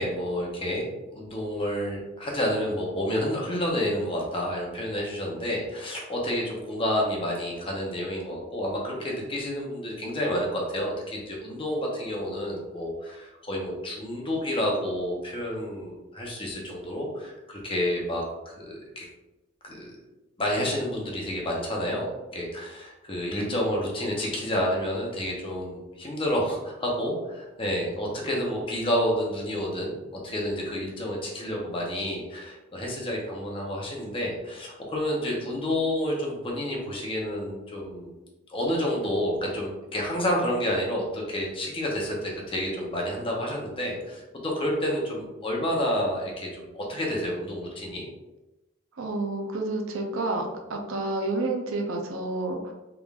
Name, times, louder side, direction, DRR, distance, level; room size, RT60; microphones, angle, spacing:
voice 1, 0.0-19.1 19.6-20.0 20.4-38.1 38.5-48.1, equal, 25° left, -2 dB, 0.8 m, -29 dB
voice 2, 49.0-52.7, right 2 dB, 70° right, 3 dB, 0.6 m, -29 dB
3.7 x 3.3 x 2.4 m, 1.0 s
head